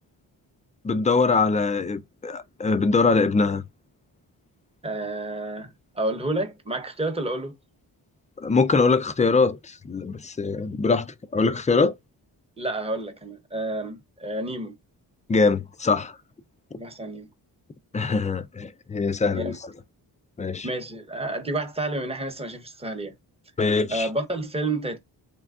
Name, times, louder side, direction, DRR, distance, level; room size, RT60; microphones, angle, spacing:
voice 1, 0.8-3.6 8.4-12.0 15.3-16.2 17.9-19.6 20.4-20.7 23.6-24.1, left 4 dB, 20° left, 0.3 m, -23 dB
voice 2, 4.8-5.7 5.9-7.5 12.6-14.7 16.8-17.3 19.3-19.6 20.6-23.2 23.9-25.0, right 2 dB, 15° right, 0.8 m, -30 dB
3.2 x 2.3 x 3.5 m
cardioid pair, 90°, 42 cm